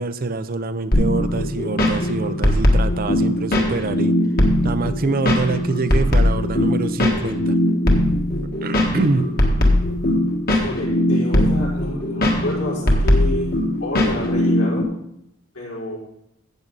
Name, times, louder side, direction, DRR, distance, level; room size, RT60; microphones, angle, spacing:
voice 1, 0.0-4.1 4.6-7.6 8.6-9.3, right 3 dB, 40° right, 11 dB, 0.5 m, -25 dB
sound 1, 0.9-14.8, left 1 dB, 45° left, 1.7 m, -20 dB
voice 2, 10.5-13.5 13.8-14.8 15.5-16.0, left 1 dB, 75° left, -5 dB, 5.3 m, -29 dB
13.5 x 8.5 x 4.0 m, 0.75 s
head